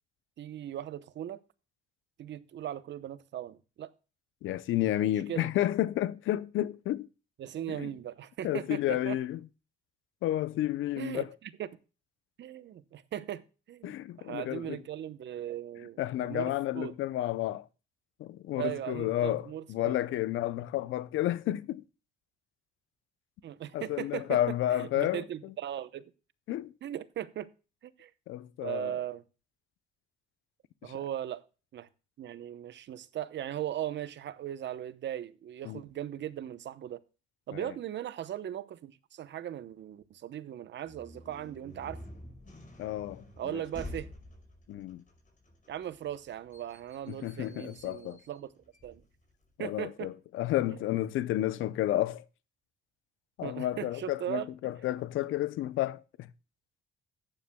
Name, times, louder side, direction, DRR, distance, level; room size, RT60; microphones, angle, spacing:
voice 1, 0.4-1.4 2.2-3.9 5.3-5.5 7.4-9.2 11.0-11.7 12.4-13.4 13.7-16.9 18.6-20.0 23.4-26.1 26.8-27.5 27.8-28.1 28.6-29.2 30.8-31.4 31.7-31.9 32.2-37.0 37.5-42.0 43.4-44.1 45.7-48.5 48.8-49.0 49.6-50.1 50.7-50.8 53.4-54.7, right 11 dB, 65° right, 0.8 m, -38 dB
voice 2, 4.4-7.1 7.7-7.9 8.4-9.4 10.2-11.3 13.8-14.8 16.0-17.7 18.2-21.8 23.7-25.5 26.5-26.7 28.3-29.0 30.8-30.9 35.6-35.8 37.5-37.7 42.8-43.6 44.7-45.0 47.1-48.2 49.6-52.2 53.4-56.3, left 13 dB, 85° left, 0.6 m, -31 dB
sound 1, 40.8-49.5, left 1 dB, 40° left, 5.2 m, -49 dB
14.5 x 9.9 x 2.2 m
cardioid pair, 90°, 20 cm